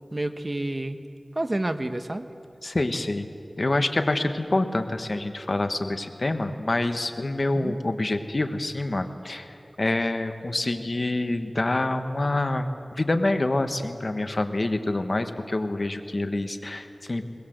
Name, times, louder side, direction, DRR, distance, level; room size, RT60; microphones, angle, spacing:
voice 1, 0.1-1.0 1.3-2.3 7.5-7.7, right 1 dB, 40° right, 9 dB, 1.1 m, -29 dB
voice 2, 2.6-3.3 3.6-17.2, left 2 dB, 55° left, 7 dB, 1.4 m, -26 dB
21.5 x 20.5 x 7.9 m, 2.7 s
wide cardioid pair, 55°, 0 cm